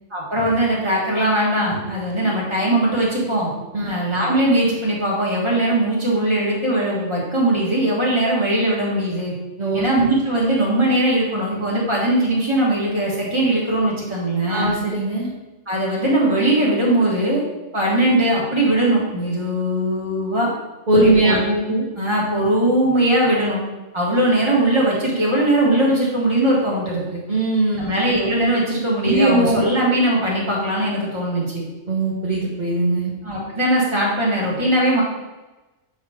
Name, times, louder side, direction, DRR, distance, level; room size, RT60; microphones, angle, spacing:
voice 1, 0.1-3.5 3.8-9.3 9.7-14.7 15.7-17.4 17.7-20.5 20.9-23.6 23.9-27.2 27.8-31.7 33.2-35.0, right 1 dB, 20° right, -5 dB, 1.6 m, -20 dB
voice 2, 9.6-10.1 14.5-15.3 20.9-21.4 27.3-27.9 29.0-29.6 31.9-33.1, right 2 dB, 40° right, -4 dB, 1.0 m, -19 dB
7.4 x 3.1 x 5.0 m, 1.1 s
omnidirectional pair, 1.3 m